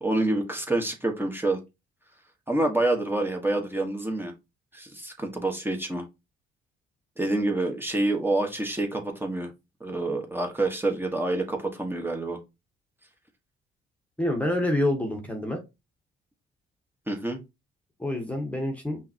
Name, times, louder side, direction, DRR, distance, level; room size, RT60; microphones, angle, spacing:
voice 1, 0.0-1.6 2.5-4.3 4.7-6.0 7.2-9.5 9.8-12.4 17.1-17.4, right 2 dB, 10° right, 3 dB, 1.4 m, -27 dB
voice 2, 14.2-15.6 18.0-19.0, left 1 dB, 5° left, 3 dB, 1.3 m, -27 dB
5.5 x 3.2 x 2.9 m, 0.23 s
cardioid pair, 90°, 20 cm